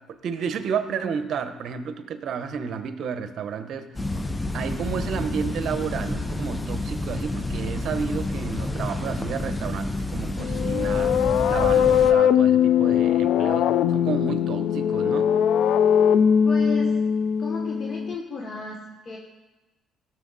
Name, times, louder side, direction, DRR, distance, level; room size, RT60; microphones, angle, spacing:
voice 1, 0.1-3.9 4.5-15.3, right 6 dB, 60° right, 10 dB, 0.9 m, -31 dB
sound 1, 3.9-12.1, left 2 dB, 15° left, 0.8 m, -29 dB
sound 2, 10.4-18.1, left 8 dB, 75° left, 0.5 m, -20 dB
voice 2, 16.4-16.9 17.4-19.2, left 4 dB, 45° left, 0 dB, 1.3 m, -34 dB
17.0 x 6.8 x 4.1 m, 1.2 s
cardioid pair, 95°, 0 cm